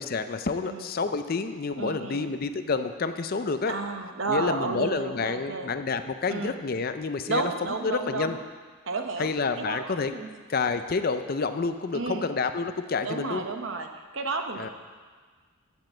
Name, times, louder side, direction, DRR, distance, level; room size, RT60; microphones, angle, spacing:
voice 1, 0.0-3.8 4.3-7.5 7.8-8.4 9.2-10.1 10.5-13.4 14.5-14.7, left 4 dB, 45° left, 10 dB, 0.4 m, -29 dB
voice 2, 1.8-2.3 3.7-5.7 6.3-6.6 7.3-8.4 8.9-9.3 9.6-10.3 11.9-12.3 13.0-14.7, right 3 dB, 60° right, 6 dB, 0.9 m, -32 dB
7.5 x 7.4 x 7.8 m, 1.5 s
head